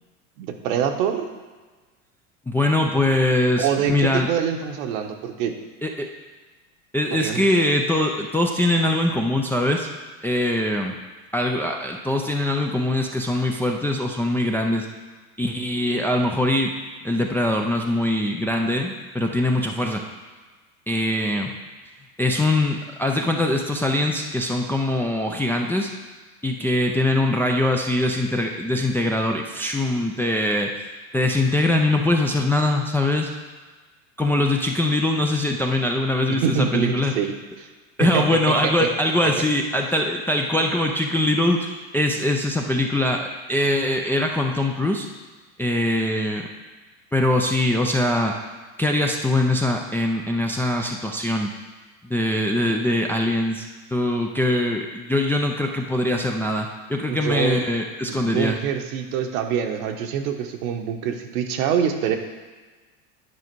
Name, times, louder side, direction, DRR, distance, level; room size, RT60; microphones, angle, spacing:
voice 1, 0.4-1.2 3.1-3.2 3.6-5.5 7.1-7.5 36.3-37.3 37.6-37.7 38.0-38.9 57.1-57.6 58.1-62.2, right 8 dB, 65° right, 5 dB, 1.1 m, -25 dB
voice 2, 2.5-4.3 5.8-6.1 6.9-9.9 10.2-11.0 11.3-14.9 15.4-16.7 17.0-20.0 20.9-21.5 22.2-25.9 26.4-30.7 31.1-33.3 34.2-37.1 38.0-45.1 45.6-46.5 47.1-48.4 48.8-51.5 52.0-58.6, left 1 dB, 5° left, 1 dB, 0.4 m, -22 dB
9.6 x 4.9 x 4.6 m, 1.3 s
hypercardioid pair, 105°, 43 cm